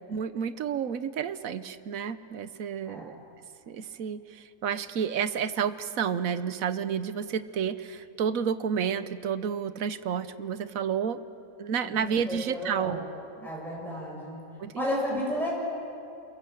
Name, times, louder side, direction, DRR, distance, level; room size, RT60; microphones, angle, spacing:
voice 1, 0.1-3.1 3.7-11.2 11.6-13.0 14.6-14.8 15.1-15.2, right 7 dB, 70° right, 13 dB, 1.3 m, -30 dB
voice 2, 12.3-13.0 13.4-14.4 14.8-15.5, left 1 dB, ahead, -5 dB, 6.9 m, -32 dB
29.5 x 22.0 x 7.8 m, 2.7 s
omnidirectional pair, 1.5 m